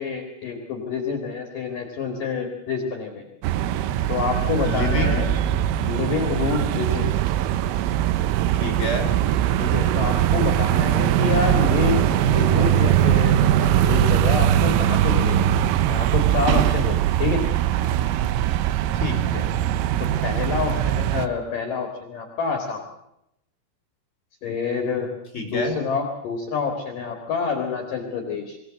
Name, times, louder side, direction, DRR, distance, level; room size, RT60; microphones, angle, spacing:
voice 1, 0.0-3.3 4.1-5.3 5.9-7.1 9.6-12.0 12.3-15.5 15.9-17.4 20.2-22.8 24.4-25.1 25.5-28.6, left 5 dB, 50° left, 3 dB, 3.4 m, -27 dB
sound 1, 3.4-21.3, right 11 dB, 90° right, 3.6 m, -21 dB
voice 2, 4.6-5.2 8.6-9.1 18.9-19.5 25.3-25.8, left 2 dB, 15° left, 4 dB, 4.6 m, -28 dB
24.5 x 17.5 x 7.8 m, 0.81 s
omnidirectional pair, 5.6 m